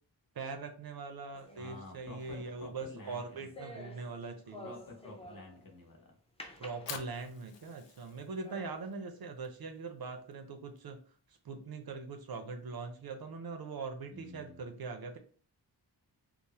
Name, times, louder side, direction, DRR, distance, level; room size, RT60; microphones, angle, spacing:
voice 1, 0.4-4.7 6.6-11.0 11.4-15.2, right 4 dB, 55° right, 6 dB, 0.5 m, -42 dB
sound 1, 1.3-5.7 6.4-7.5 8.0-8.1 8.4-8.9, left 1 dB, 15° left, 0.4 m, -51 dB
voice 2, 1.6-3.6 4.6-6.1 14.1-14.6, left 2 dB, 50° left, 0 dB, 0.8 m, -50 dB
Fire, 6.6-12.8, left 7 dB, 75° left, 0.5 m, -51 dB
3.2 x 2.0 x 2.7 m, 0.43 s
wide cardioid pair, 130°, 43 cm